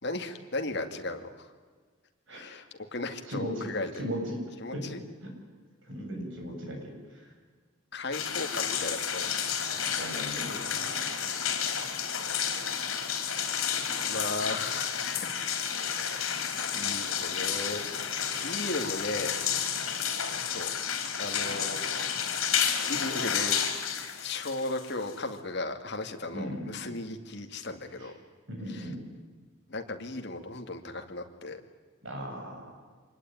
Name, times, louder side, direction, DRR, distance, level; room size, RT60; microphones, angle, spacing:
voice 1, 0.0-1.5 2.3-2.7 2.9-3.9 4.6-5.0 7.9-9.7 14.0-15.3 15.9-16.4 16.7-17.8 18.3-19.3 20.4-20.7 21.2-21.8 22.8-23.6 24.2-28.1 28.7-28.8 29.7-31.6, left 2 dB, 50° left, 5 dB, 2.3 m, -36 dB
voice 2, 3.3-5.3 5.8-7.3 9.7-11.1 26.3-26.7 28.0-28.1 28.5-29.0 32.0-32.8, equal, 60° right, 2 dB, 7.6 m, -38 dB
sound 1, 8.1-25.4, left 8 dB, 75° left, 4.0 m, -31 dB
25.5 x 20.5 x 9.3 m, 1.5 s
head